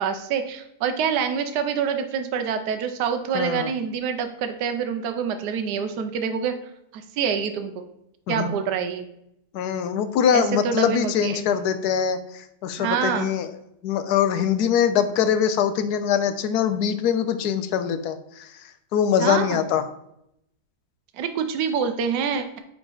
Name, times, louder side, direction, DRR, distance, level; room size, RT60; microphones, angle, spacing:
voice 1, 0.0-6.5 6.9-7.9 8.3-9.1 10.3-11.5 12.8-13.3 19.2-19.6 21.1-22.6, right 7 dB, 75° right, 7 dB, 1.2 m, -26 dB
voice 2, 3.3-3.7 8.3-8.5 9.5-13.5 13.8-19.8, left 8 dB, 75° left, 11 dB, 1.1 m, -23 dB
8.9 x 3.6 x 3.8 m, 0.79 s
omnidirectional pair, 1.8 m